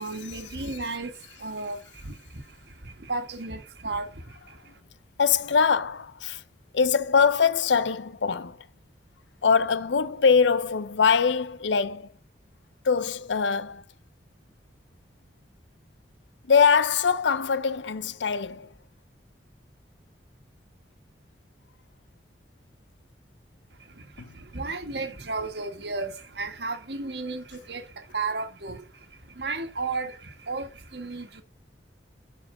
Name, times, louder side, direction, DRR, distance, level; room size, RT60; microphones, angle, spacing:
voice 1, 0.0-4.8 23.7-31.4, right 3 dB, 65° right, 1.6 m, -34 dB
voice 2, 5.2-6.4 6.7-8.7 9.4-12.1 12.8-13.8 16.5-18.7 24.2-24.3, left 6 dB, 85° left, 0.6 m, -23 dB
12.5 x 4.7 x 5.0 m
head